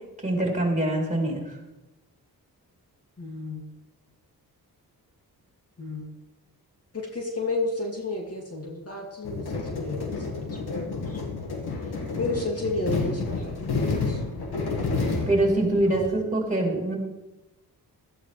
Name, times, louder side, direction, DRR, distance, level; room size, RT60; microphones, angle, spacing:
voice 1, 0.2-1.6 15.3-17.0, right 1 dB, 20° right, 0 dB, 4.7 m, -24 dB
voice 2, 3.2-3.6 5.8-6.1 6.9-11.1 12.2-14.2 15.9-16.1, left 2 dB, 40° left, 0 dB, 2.7 m, -32 dB
sound 1, 9.2-16.1, left 3 dB, 85° left, 2.1 m, -30 dB
15.5 x 13.0 x 3.4 m, 0.99 s
cardioid pair, 70°, 38 cm